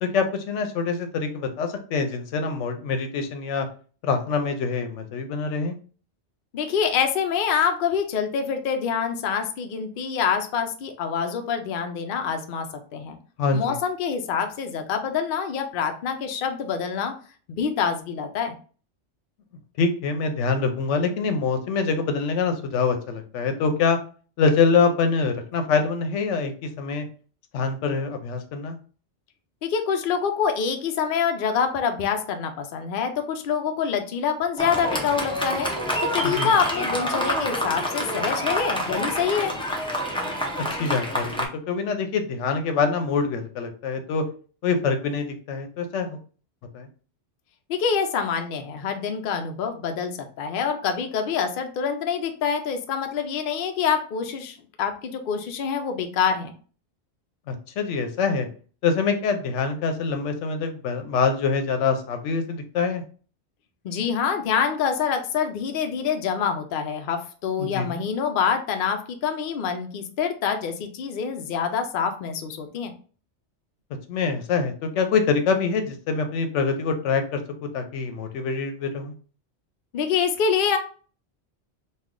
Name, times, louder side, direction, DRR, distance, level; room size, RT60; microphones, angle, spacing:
voice 1, 0.0-3.7 4.0-5.7 13.4-13.8 19.8-24.0 24.4-27.0 27.5-28.8 36.2-36.5 40.6-44.2 44.6-46.2 46.7-46.9 57.5-58.5 58.8-63.0 67.6-68.0 74.1-79.1, left 5 dB, 85° left, 6 dB, 0.9 m, -25 dB
voice 2, 6.5-12.7 12.9-13.2 13.5-17.1 17.5-18.6 29.6-35.7 36.1-39.5 47.7-56.5 63.8-72.9 79.9-80.8, left 6 dB, 60° left, 6 dB, 0.6 m, -26 dB
Fireworks, 34.6-41.4, equal, 5° left, 0.4 m, -27 dB
3.2 x 2.3 x 3.6 m, 0.40 s
omnidirectional pair, 1.2 m